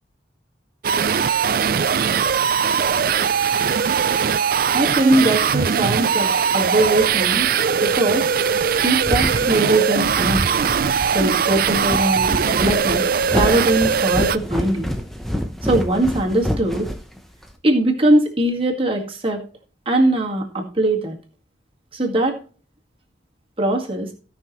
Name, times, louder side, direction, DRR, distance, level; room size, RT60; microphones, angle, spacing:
sound 1, 0.8-14.4, right 7 dB, 50° right, 0.4 m, -20 dB
voice 1, 4.7-7.5 7.8-8.3 8.8-10.4 11.1-13.0 13.3-14.9 15.6-16.9 17.6-19.4 19.9-21.2 21.9-22.4 23.6-24.1, right 1 dB, 30° right, 1 dB, 2.0 m, -20 dB
sound 2, 8.6-17.5, equal, ahead, 0.9 m, -28 dB
17.0 x 5.9 x 3.1 m, 0.39 s
head